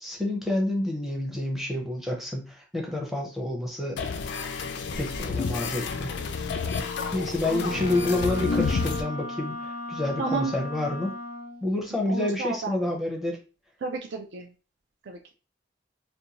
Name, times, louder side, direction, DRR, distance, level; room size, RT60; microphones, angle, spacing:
voice 1, 0.0-4.0 5.0-6.2 6.8-11.1 11.6-13.4, left 2 dB, ahead, -1 dB, 0.5 m, -29 dB
sound 1, 4.0-9.0, left 4 dB, 60° left, 0.3 m, -30 dB
voice 2, 7.4-7.9 10.2-10.5 12.1-13.0 13.8-14.5 15.0-15.3, right 4 dB, 65° right, 1 dB, 0.4 m, -32 dB
Wind instrument woodwind instrument, 7.6-11.7, left 1 dB, 40° right, 1.0 m, -37 dB
2.5 x 2.2 x 2.9 m, 0.34 s
head